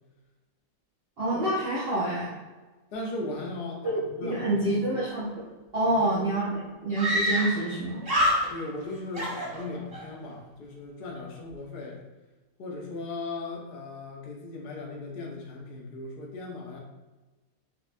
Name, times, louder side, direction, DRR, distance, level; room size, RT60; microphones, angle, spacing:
voice 1, 1.2-2.3 3.8-5.5 5.7-8.0, right 1 dB, 60° right, -8 dB, 0.6 m, -27 dB
voice 2, 2.9-4.9 5.9-6.1 8.5-12.0 12.6-16.8, left 2 dB, 65° left, -2 dB, 0.5 m, -37 dB
Screaming, 5.9-6.0 6.1-6.2 6.9-7.8 8.0-8.8 9.1-10.1, equal, 25° right, 0.8 m, -27 dB
4.8 x 2.1 x 2.5 m, 1.2 s
omnidirectional pair, 1.9 m